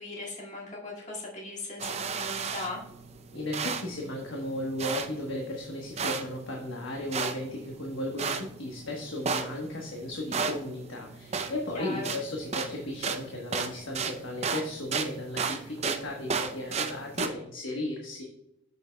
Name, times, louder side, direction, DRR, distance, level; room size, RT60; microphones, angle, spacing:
voice 1, 0.0-2.8 11.7-12.1, left 2 dB, 35° left, -5 dB, 2.1 m, -38 dB
sound 1, 1.8-17.3, right 5 dB, 30° right, 0.5 m, -35 dB
voice 2, 3.3-18.2, left 1 dB, 75° left, 0 dB, 1.2 m, -35 dB
8.2 x 7.0 x 2.2 m, 0.84 s
head